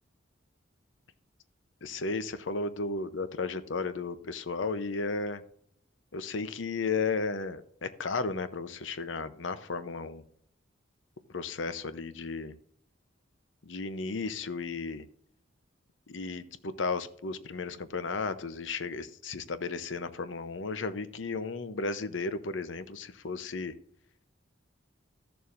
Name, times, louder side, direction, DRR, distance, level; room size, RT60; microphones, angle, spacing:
voice 1, 1.8-5.4 6.1-10.2 11.3-12.5 13.6-15.1 16.1-23.7, left 4 dB, 85° left, 12 dB, 0.8 m, -34 dB
14.5 x 6.9 x 2.5 m, 0.68 s
head